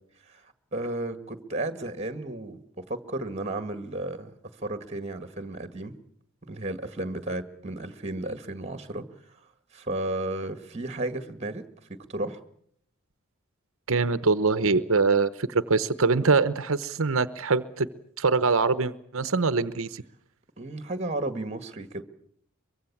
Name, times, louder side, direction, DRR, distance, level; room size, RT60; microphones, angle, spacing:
voice 1, 0.7-4.3 4.6-6.0 6.5-9.0 9.7-12.4 20.6-22.0, right 2 dB, 30° right, 11 dB, 1.7 m, -33 dB
voice 2, 13.9-17.9 18.2-20.0, right 4 dB, 60° right, 14 dB, 0.9 m, -23 dB
23.5 x 23.0 x 7.3 m, 0.67 s
head